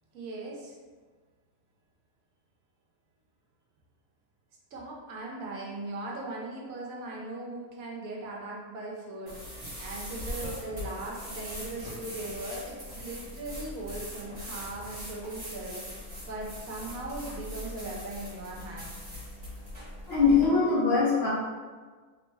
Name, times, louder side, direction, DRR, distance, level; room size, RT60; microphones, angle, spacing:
voice 1, 0.1-0.8 4.7-18.9, right 2 dB, 80° right, -2 dB, 1.1 m, -39 dB
sound 1, 9.3-20.5, equal, 35° right, 1.1 m, -41 dB
voice 2, 20.1-21.3, left 4 dB, 55° left, -6 dB, 0.9 m, -22 dB
3.1 x 2.1 x 3.3 m, 1.5 s
omnidirectional pair, 1.5 m